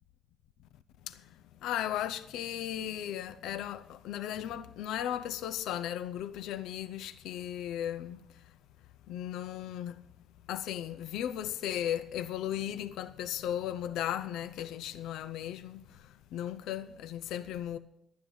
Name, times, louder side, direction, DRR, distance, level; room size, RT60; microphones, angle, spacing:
voice 1, 1.0-8.5 9.1-10.0 10.5-17.8, left 11 dB, 90° left, 0.5 m, -36 dB
11.0 x 9.4 x 8.5 m
cardioid pair, 90°, 0 cm